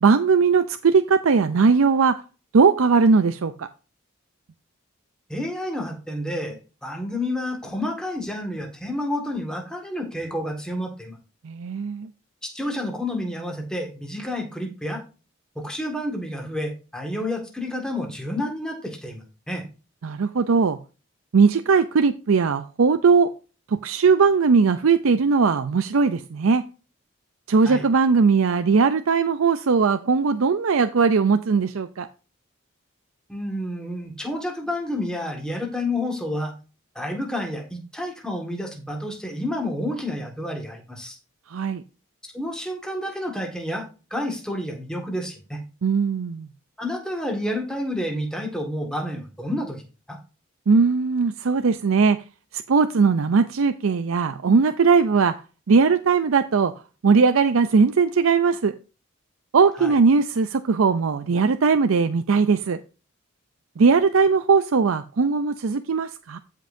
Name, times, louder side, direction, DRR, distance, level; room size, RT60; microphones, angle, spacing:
voice 1, 0.0-2.2 2.5-3.7 11.4-12.1 20.0-20.8 21.3-23.3 23.7-26.6 27.5-32.1 41.5-41.8 45.8-46.5 50.7-52.2 52.5-55.3 55.7-56.7 57.0-58.7 59.5-62.8 63.8-66.4, right 5 dB, 80° right, 10 dB, 0.5 m, -19 dB
voice 2, 5.3-11.2 12.4-15.0 15.6-19.6 27.7-27.8 33.3-36.5 37.0-41.2 42.2-45.6 46.8-50.2 59.8-59.9, left 1 dB, 5° left, 1 dB, 1.8 m, -30 dB
15.0 x 5.3 x 2.7 m, 0.33 s
head